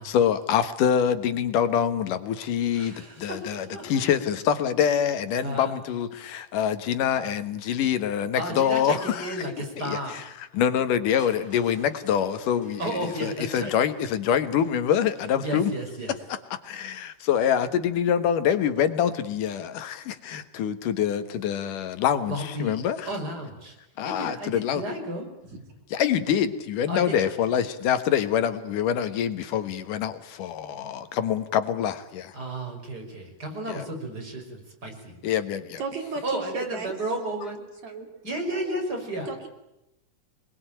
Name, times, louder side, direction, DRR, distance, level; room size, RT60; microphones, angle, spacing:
voice 1, 0.0-9.3 9.9-10.0 10.5-15.7 16.5-23.1 24.0-24.8 25.9-32.4 33.7-33.9 35.2-35.8, left 9 dB, 85° left, 11 dB, 3.0 m, -25 dB
voice 2, 2.7-4.0 5.4-5.7 8.3-10.2 12.8-13.8 15.4-16.2 22.3-23.8 24.0-25.3 26.9-27.3 32.3-35.2 36.2-37.6 38.2-39.3, right 1 dB, 30° right, 2 dB, 6.1 m, -33 dB
Crushing, 11.2-17.1 18.0-18.1, equal, ahead, 6.6 m, -53 dB
voice 3, 35.8-37.0 37.8-38.1 39.3-39.5, right 4 dB, 60° right, 4 dB, 4.0 m, -34 dB
25.0 x 21.0 x 9.1 m, 0.89 s
omnidirectional pair, 3.7 m